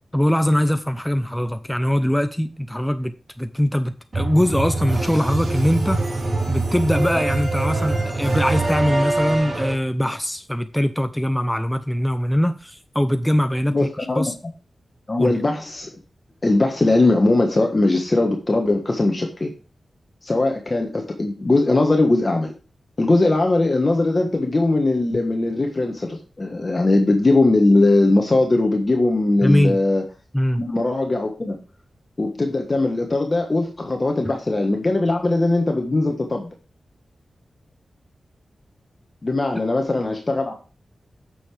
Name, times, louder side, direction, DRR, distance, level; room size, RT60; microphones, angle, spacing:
voice 1, 0.1-3.1 3.4-6.0 6.5-13.9 14.2-14.3 15.2-15.4 29.4-29.8 30.3-30.6, equal, 5° left, 0.6 m, -21 dB
sound 1, 4.1-9.7, right 2 dB, 45° right, 4.4 m, -24 dB
voice 2, 13.7-14.3 15.1-15.9 16.4-19.5 20.2-22.5 23.0-30.0 30.6-31.6 32.2-36.5 39.2-40.5, left 2 dB, 35° left, 1.4 m, -20 dB
8.8 x 6.6 x 3.4 m
wide cardioid pair, 75°, 0 cm